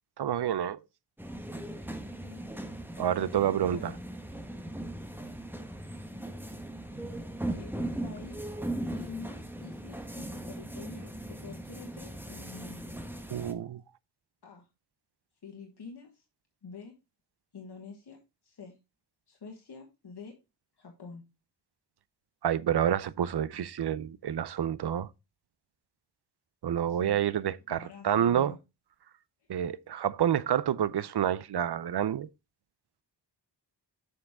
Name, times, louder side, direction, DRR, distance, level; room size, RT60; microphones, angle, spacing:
voice 1, 0.2-0.8 3.0-3.9 13.3-13.8 22.4-25.1 26.6-27.8 28.0-28.5 29.5-32.3, right 10 dB, 65° right, 0.6 m, -28 dB
sound 1, 1.2-13.5, right 1 dB, 5° right, 1.1 m, -39 dB
voice 2, 3.7-4.0 7.5-7.7 8.0-8.6 8.8-13.0 14.4-14.7 15.4-16.2 16.6-17.0 17.5-18.8 19.3-20.4 20.8-21.3 26.9-27.2 27.7-28.6, left 5 dB, 65° left, 1.5 m, -47 dB
7.0 x 6.5 x 3.6 m
wide cardioid pair, 100°, 43 cm